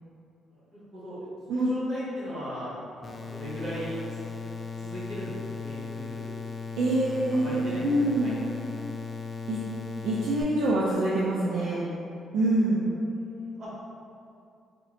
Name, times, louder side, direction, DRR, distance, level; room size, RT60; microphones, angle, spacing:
voice 1, 0.5-4.3 4.8-6.2 7.1-8.8 12.7-13.7, equal, 55° right, -9 dB, 1.4 m, -38 dB
sound 1, 3.0-10.4, left 5 dB, 30° left, 0.3 m, -37 dB
voice 2, 6.8-8.3 9.5-9.6 10.0-11.9 12.3-12.8, right 1 dB, 80° right, -7 dB, 0.4 m, -25 dB
3.7 x 2.1 x 2.5 m, 2.5 s
cardioid pair, 90°, 0 cm